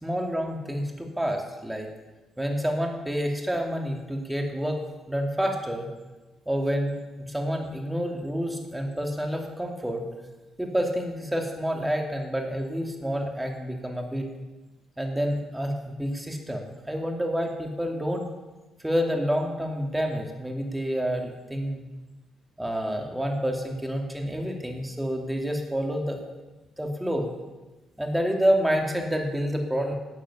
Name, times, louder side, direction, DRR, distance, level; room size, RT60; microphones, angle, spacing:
voice 1, 0.0-1.9 2.4-4.8 5.1-5.9 6.5-10.1 10.6-14.3 15.0-18.3 18.8-21.8 22.6-26.2 26.8-27.3 28.0-30.0, equal, 5° right, 2 dB, 2.7 m, -28 dB
12.5 x 8.9 x 8.4 m, 1.1 s
cardioid pair, 90°, 0 cm